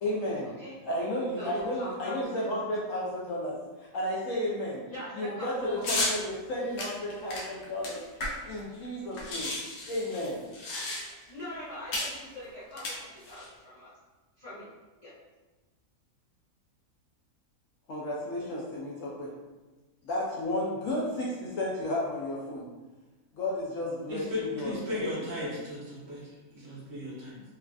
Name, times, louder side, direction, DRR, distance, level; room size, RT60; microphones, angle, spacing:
voice 1, 0.0-0.5 0.8-3.6 3.9-4.8 5.1-8.0 8.3-9.5 9.8-10.4 17.9-19.3 20.0-22.6 23.3-25.1 25.4-25.6, left 1 dB, 65° left, -5 dB, 0.8 m, -33 dB
voice 2, 1.4-2.4 4.9-5.8 11.0-13.9 14.4-14.7 15.0-15.1, left 1 dB, 40° left, -12 dB, 0.6 m, -42 dB
sound 1, 5.8-6.2 6.8-8.6 8.8-8.9 9.1-11.3 11.9-12.2 12.7-13.5, left 2 dB, 90° left, 1.2 m, -33 dB
voice 3, 24.1-27.4, left 2 dB, 55° right, -7 dB, 1.1 m, -36 dB
3.2 x 2.4 x 2.3 m, 1.2 s
omnidirectional pair, 1.6 m